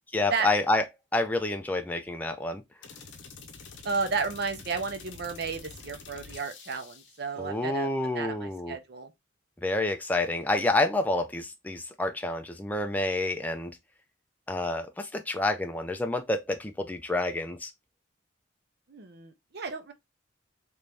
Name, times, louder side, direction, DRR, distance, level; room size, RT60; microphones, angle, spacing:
voice 1, 0.1-0.8 1.1-2.6 7.4-8.8 9.6-13.8 14.5-17.7, left 2 dB, 10° left, 0.3 m, -28 dB
sound 1, 2.8-7.3, left 4 dB, 65° left, 0.7 m, -47 dB
voice 2, 3.8-7.9 8.1-9.1 18.9-19.9, right 4 dB, 55° right, 0.7 m, -33 dB
3.0 x 2.6 x 3.3 m
head